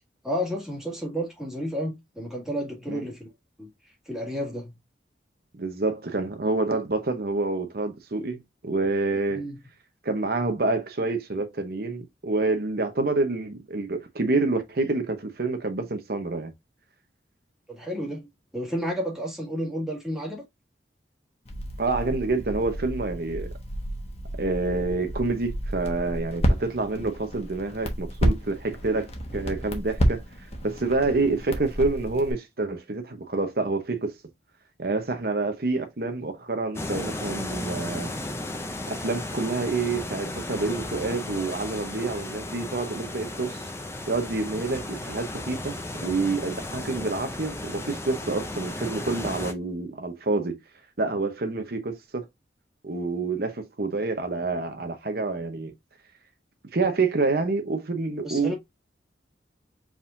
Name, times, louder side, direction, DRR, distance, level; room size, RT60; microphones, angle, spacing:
voice 1, 0.2-3.3 3.6-3.7 4.1-4.7 9.3-9.6 17.7-18.3 18.5-20.4 58.2-58.5, equal, 5° right, 1.8 m, -31 dB
voice 2, 5.5-9.4 10.0-16.5 21.8-23.5 24.4-30.2 30.6-34.1 34.8-38.1 38.9-43.7 44.1-50.6 51.0-52.2 52.8-55.7 56.7-58.5, right 3 dB, 55° right, 0.9 m, -27 dB
Crackle, 21.5-32.3, equal, 35° left, 1.1 m, -30 dB
sound 1, 36.7-49.5, left 1 dB, 15° left, 0.7 m, -35 dB
4.9 x 3.7 x 2.6 m
head